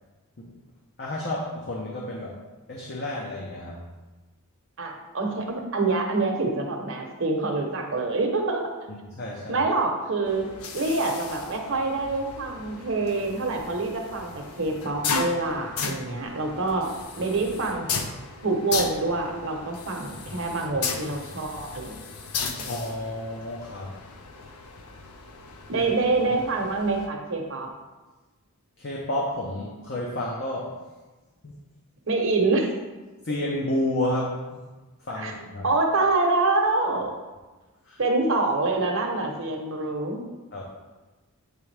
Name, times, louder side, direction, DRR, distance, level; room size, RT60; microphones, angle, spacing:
voice 1, 1.0-2.4 2.7-3.9 8.9-9.6 22.7-24.0 25.8-25.9 28.8-30.8 31.4-31.6 33.2-34.6 35.0-35.7 37.8-38.0 40.5-40.6, left 1 dB, 50° left, -3 dB, 0.7 m, -31 dB
voice 2, 4.8-8.6 9.5-10.5 10.7-16.9 17.2-17.9 18.4-21.9 22.6-22.7 25.7-27.7 32.1-32.7 35.2-35.3 35.6-37.1 38.0-40.2, right 3 dB, 60° right, 2 dB, 0.9 m, -26 dB
sound 1, 10.2-27.1, left 5 dB, 85° left, 0.6 m, -36 dB
8.5 x 3.5 x 3.3 m, 1.2 s
head